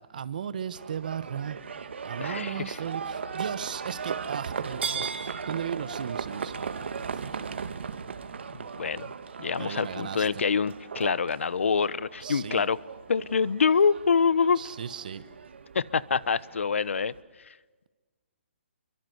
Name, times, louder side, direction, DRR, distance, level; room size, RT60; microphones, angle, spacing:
voice 1, 0.0-1.6 2.0-7.4 9.6-10.4 12.2-12.7 14.6-15.2, right 8 dB, 40° right, 14 dB, 1.1 m, -36 dB
Livestock farm animals working animals, 0.7-17.2, right 6 dB, 60° right, 2.2 m, -37 dB
voice 2, 2.2-2.8 8.5-9.1 9.4-12.8 13.1-14.6 15.7-17.1, left 5 dB, 75° left, 20 dB, 1.0 m, -26 dB
28.5 x 23.5 x 8.0 m, 1.3 s
hypercardioid pair, 175°, 7 cm